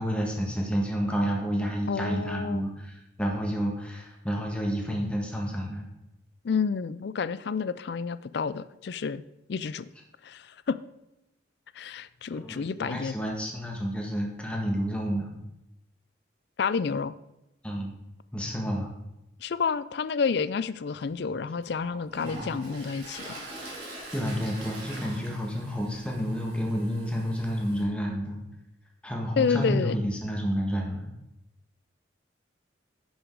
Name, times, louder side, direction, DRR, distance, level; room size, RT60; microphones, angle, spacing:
voice 1, 0.0-5.8 12.3-15.3 17.6-18.0 18.3-18.9 22.2-22.6 24.1-28.4 29.0-31.1, equal, 5° left, 0 dB, 1.5 m, -30 dB
voice 2, 1.9-2.6 6.4-9.2 9.5-9.9 10.2-10.8 11.8-13.2 16.6-17.1 19.4-23.4 29.4-30.0, left 5 dB, 60° left, 16 dB, 0.4 m, -29 dB
Toilet flush, 21.0-21.1 21.6-27.8, right 1 dB, 50° right, 3.5 m, -43 dB
10.0 x 6.3 x 4.7 m, 0.90 s
head